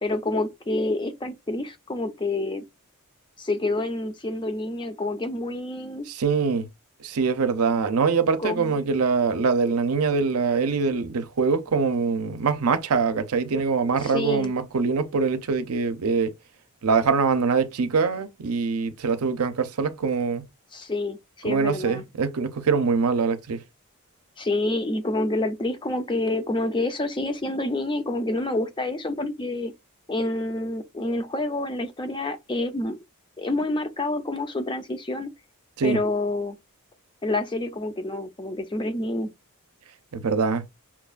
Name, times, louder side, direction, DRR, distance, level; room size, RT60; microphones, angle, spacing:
voice 1, 0.0-2.6 3.4-6.1 8.4-8.7 14.0-14.5 20.7-22.0 24.4-29.7 30.1-33.0 33.4-35.3 35.8-36.6 37.2-39.3, left 2 dB, 20° left, 0.5 m, -28 dB
voice 2, 6.1-6.7 7.0-16.3 16.8-20.4 21.4-23.6 35.8-36.0 40.1-40.6, right 5 dB, 70° right, 0.6 m, -23 dB
5.7 x 2.3 x 2.4 m
head